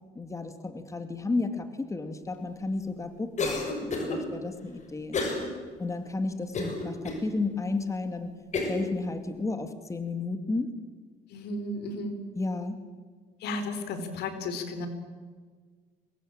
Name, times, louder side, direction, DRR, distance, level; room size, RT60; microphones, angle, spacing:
voice 1, 0.2-5.2 5.8-8.3 8.6-10.7 12.4-12.8, left 3 dB, 20° left, 8 dB, 2.2 m, -32 dB
Cough, 3.4-4.2 5.1-5.5 5.9-6.0 6.5-7.2 7.8-7.9 8.5-8.9, left 3 dB, 45° left, 6.7 m, -30 dB
voice 2, 11.3-12.2 13.4-14.9, left 2 dB, 75° left, 8 dB, 4.2 m, -34 dB
25.0 x 21.0 x 8.8 m, 1.5 s
cardioid pair, 110°, 17 cm